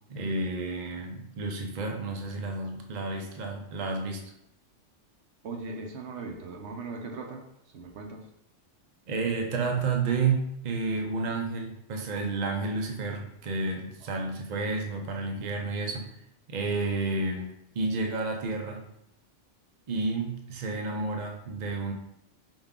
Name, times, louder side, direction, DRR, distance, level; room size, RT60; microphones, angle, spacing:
voice 1, 0.1-4.2 9.1-16.1 16.5-17.5 17.7-18.8 19.9-21.9, right 3 dB, 50° right, 2 dB, 0.6 m, -30 dB
voice 2, 5.4-7.4 7.7-8.2 14.2-14.3, right 3 dB, 65° right, 2 dB, 0.9 m, -39 dB
5.3 x 2.3 x 3.6 m, 0.77 s
omnidirectional pair, 1.3 m